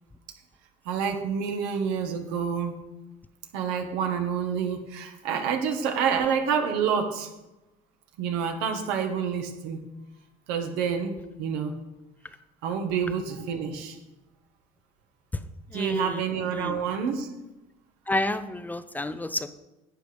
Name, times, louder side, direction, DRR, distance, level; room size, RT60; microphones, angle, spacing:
voice 1, 0.9-2.7 3.5-7.3 8.2-9.8 10.5-11.7 12.6-14.0 15.7-17.3, right 6 dB, 80° right, 5 dB, 1.8 m, -28 dB
voice 2, 15.7-16.2 16.5-16.8 18.1-19.5, left 2 dB, 10° left, 11 dB, 0.5 m, -30 dB
11.5 x 8.3 x 5.2 m, 1.0 s
cardioid pair, 120°, 16 cm